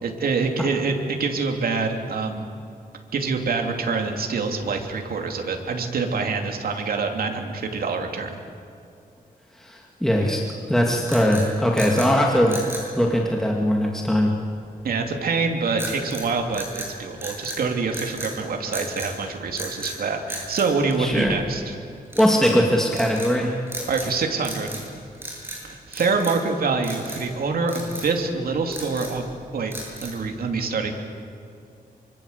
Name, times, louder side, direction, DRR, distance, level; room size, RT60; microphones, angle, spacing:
voice 1, 0.0-2.4 3.1-8.4 14.8-21.8 23.9-24.8 25.6-29.7 30.0-30.9, right 4 dB, 75° right, 3 dB, 2.9 m, -26 dB
voice 2, 9.6-12.6 12.9-14.3 21.0-21.4 22.2-23.6, equal, 5° left, 0 dB, 2.3 m, -20 dB
sound 1, 11.1-12.1 12.5-12.9 15.8-16.3 16.5-17.6 17.9-18.3 18.7-19.1 19.5-20.0 20.3-21.5 22.1-22.6 22.9-23.3 23.7-24.1 24.4-24.9 25.1-25.6 25.9-26.5 26.8-27.2 27.7-28.1 28.5-29.2 29.7-30.2, right 1 dB, 15° right, 7.6 m, -35 dB
25.0 x 25.0 x 8.2 m, 2.5 s
wide cardioid pair, 135°, 16 cm